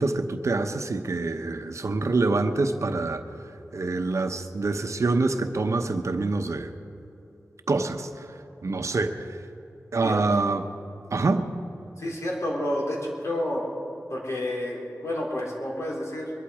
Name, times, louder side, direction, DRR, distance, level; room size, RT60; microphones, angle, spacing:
voice 1, 0.0-3.2 3.7-6.7 7.7-8.3 8.6-9.3 9.9-10.7 11.1-11.5, right 3 dB, 65° right, 7 dB, 0.9 m, -26 dB
voice 2, 10.0-10.3 12.0-13.6 14.1-16.3, left 1 dB, 60° left, -2 dB, 3.7 m, -30 dB
22.5 x 11.5 x 4.9 m, 3.0 s
wide cardioid pair, 75°, 6 cm